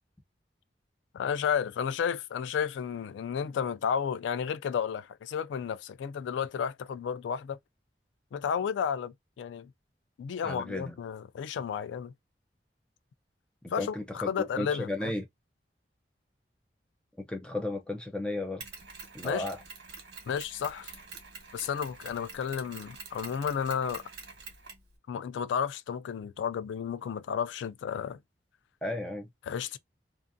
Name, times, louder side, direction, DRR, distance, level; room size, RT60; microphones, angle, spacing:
voice 1, 1.1-7.6 8.3-9.7 10.2-12.1 13.7-15.1 19.2-19.5 20.3-20.9 21.5-24.0 25.1-28.2 29.5-29.8, left 7 dB, 90° left, 0.3 m, -32 dB
voice 2, 10.4-11.0 13.6-15.3 17.2-18.6 19.1-19.6 28.8-29.3, left 1 dB, 5° left, 0.4 m, -34 dB
Mechanisms, 18.6-24.9, right 5 dB, 70° right, 1.0 m, -46 dB
2.5 x 2.4 x 2.5 m
head